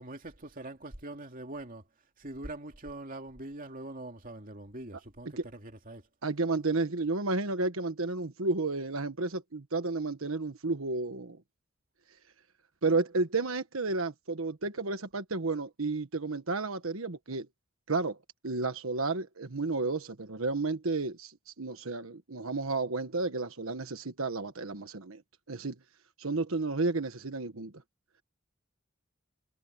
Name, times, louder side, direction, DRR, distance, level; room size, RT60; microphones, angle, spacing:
voice 1, 0.0-1.9 2.2-6.1, right 2 dB, 40° right, 2.6 m, -43 dB
voice 2, 6.2-11.4 12.8-17.5 17.9-18.2 18.4-25.2 25.5-25.7 26.2-27.7, right 3 dB, 85° right, 1.4 m, -32 dB
head